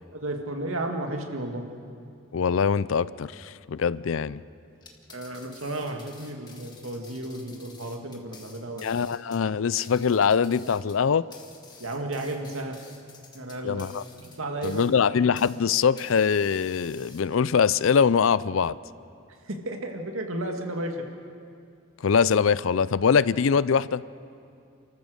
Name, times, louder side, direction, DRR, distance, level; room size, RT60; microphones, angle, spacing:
voice 1, 0.1-1.6 5.1-9.1 11.8-12.8 13.3-13.9 14.2-14.9 19.4-21.0, right 1 dB, 80° right, 3 dB, 2.1 m, -33 dB
voice 2, 2.3-4.4 8.8-11.3 13.6-14.0 14.6-18.8 22.0-24.0, left 6 dB, 70° left, 18 dB, 0.4 m, -23 dB
sound 1, 4.7-15.6 16.0-17.6, left 4 dB, 20° left, 1.7 m, -51 dB
30.0 x 14.5 x 6.5 m, 2.4 s
head